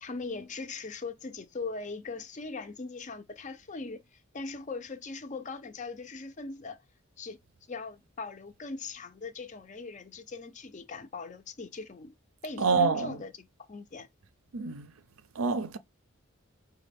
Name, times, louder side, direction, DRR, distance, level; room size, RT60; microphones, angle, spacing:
voice 1, 0.0-6.8 7.2-7.4 7.7-12.2 12.4-14.1, left 3 dB, 35° left, 0.5 m, -40 dB
voice 2, 12.6-13.2 14.5-14.9 15.4-15.8, right 4 dB, 75° right, 0.5 m, -27 dB
5.3 x 2.2 x 3.4 m
head